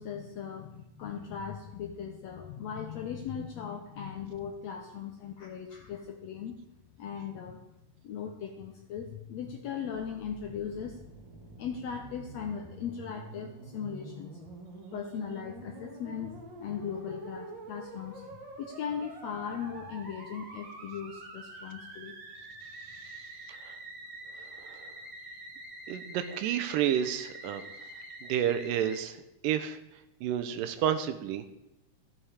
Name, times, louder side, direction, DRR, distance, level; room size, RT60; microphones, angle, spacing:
voice 1, 0.0-6.6 7.0-7.7 8.0-11.1 11.6-14.4 14.9-16.3 16.6-18.3 18.6-22.1, left 7 dB, 75° left, 3 dB, 1.6 m, -38 dB
Musical instrument, 9.9-29.0, right 2 dB, 40° right, 1.9 m, -46 dB
voice 2, 24.6-24.9 25.9-27.7 28.2-29.2 29.4-29.8 30.2-31.5, right 10 dB, 80° right, 10 dB, 2.3 m, -30 dB
14.0 x 7.2 x 4.9 m, 0.90 s
omnidirectional pair, 4.0 m